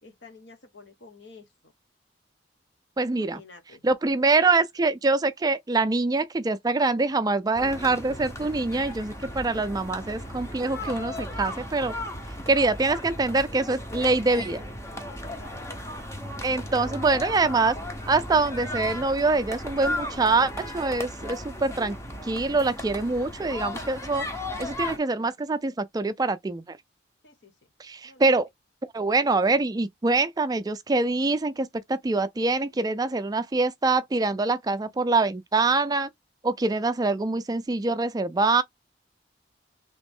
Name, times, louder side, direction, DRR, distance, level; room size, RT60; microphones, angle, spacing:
voice 1, 0.0-1.7 3.1-3.8 15.0-15.6 27.2-27.5 28.0-28.2, left 4 dB, 70° left, 1.1 m, -50 dB
voice 2, 3.0-3.4 3.8-11.9 12.5-14.6 16.4-17.8 18.1-22.0 22.2-24.3 24.6-26.8 27.8-28.5 28.9-36.1 36.4-38.6, right 3 dB, 20° right, 0.4 m, -24 dB
sound 1, 7.5-25.0, left 1 dB, 15° left, 0.8 m, -36 dB
3.3 x 3.1 x 3.5 m
head